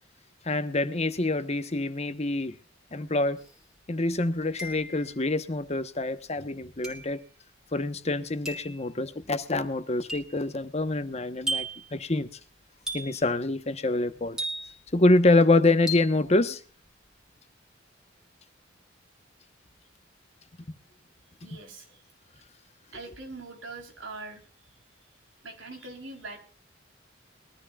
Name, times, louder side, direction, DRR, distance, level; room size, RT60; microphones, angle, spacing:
voice 1, 0.4-2.5 2.9-3.4 3.9-7.2 7.7-11.6 11.9-12.3 12.9-14.4 14.9-16.6 20.7-20.8, left 2 dB, 35° left, 1.0 m, -26 dB
sound 1, 3.4-3.5 4.6-5.1 6.8-7.2 8.4-8.8 10.1-10.4 11.5-11.9 12.9-13.3 14.4-14.9 15.9-16.2, right 1 dB, 5° right, 3.2 m, -34 dB
voice 2, 21.4-21.9 22.9-24.4 25.4-26.4, right 3 dB, 85° right, 3.8 m, -42 dB
22.0 x 13.5 x 2.4 m
head